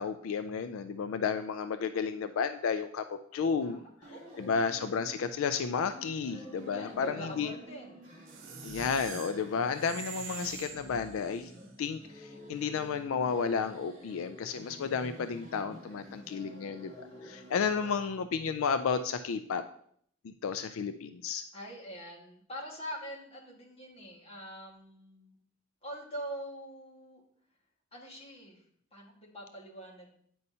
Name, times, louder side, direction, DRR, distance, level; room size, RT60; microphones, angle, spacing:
voice 1, 0.0-3.8 4.4-7.5 8.6-11.5 11.8-16.9 17.2-19.6 20.2-21.4, left 6 dB, 75° left, 10 dB, 0.4 m, -32 dB
voice 2, 3.6-4.5 6.5-8.1 17.7-18.1 21.5-25.4 25.8-27.2 27.9-28.6 28.9-30.1, equal, 30° left, -2 dB, 1.6 m, -44 dB
sound 1, 4.0-18.0, equal, 45° right, 3.1 m, -50 dB
sound 2, 8.3-11.5, right 5 dB, 70° right, 0.9 m, -44 dB
9.3 x 5.4 x 2.8 m, 0.65 s
head